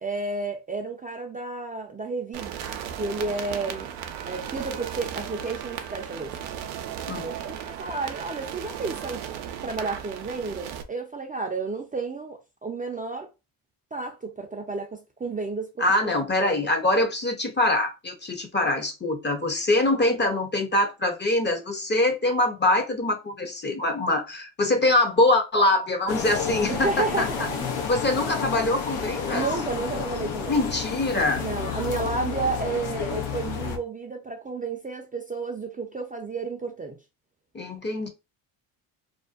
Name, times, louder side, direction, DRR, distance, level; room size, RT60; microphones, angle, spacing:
voice 1, 0.0-3.9 4.3-6.3 7.1-9.2 9.6-13.3 13.9-15.9 16.4-16.7 26.7-27.7 29.3-30.6 31.4-37.0, right 3 dB, 20° right, 0.5 m, -31 dB
sound 1, 2.3-10.8, right 9 dB, 80° right, 0.6 m, -36 dB
voice 2, 15.8-27.5 27.9-29.4 30.5-31.4 37.5-38.1, left 2 dB, 20° left, 0.6 m, -24 dB
sound 2, 26.1-33.8, left 6 dB, 75° left, 0.7 m, -31 dB
2.5 x 2.2 x 2.4 m
supercardioid pair, 70°, 49 cm